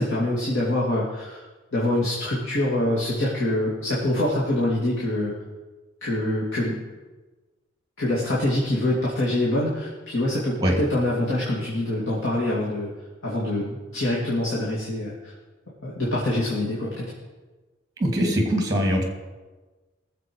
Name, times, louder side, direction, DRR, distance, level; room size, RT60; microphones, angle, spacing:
voice 1, 0.0-1.4 1.7-5.3 6.0-6.7 8.0-12.9 13.2-15.3 15.8-17.1, left 1 dB, 80° left, -6 dB, 2.7 m, -25 dB
voice 2, 18.0-19.0, equal, 20° right, 1 dB, 2.5 m, -22 dB
19.5 x 7.6 x 4.8 m, 1.2 s
head